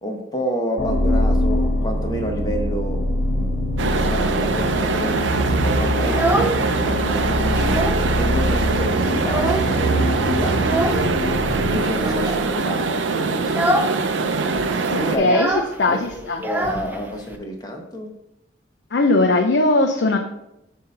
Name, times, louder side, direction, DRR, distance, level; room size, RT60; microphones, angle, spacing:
voice 1, 0.0-3.0 3.3-7.8 8.2-11.1 11.6-13.8 14.3-14.5 15.0-16.0 16.4-18.1, equal, 20° left, 1 dB, 0.9 m, -29 dB
sound 1, 0.8-12.6, equal, 45° left, 1.5 m, -23 dB
sound 2, 3.8-15.2, right 4 dB, 80° right, 0.5 m, -23 dB
Child speech kid speaking, 6.0-7.0 7.3-8.1 8.4-8.5 8.8-9.9 10.6-11.1 11.9-12.4 12.8-13.0 13.4-14.0 14.2-14.3 14.6-17.4, right 1 dB, 10° right, 0.4 m, -25 dB
voice 2, 14.9-15.5 15.8-16.4 18.9-20.2, left 2 dB, 65° left, 2 dB, 0.5 m, -19 dB
7.5 x 2.8 x 5.4 m, 0.85 s
head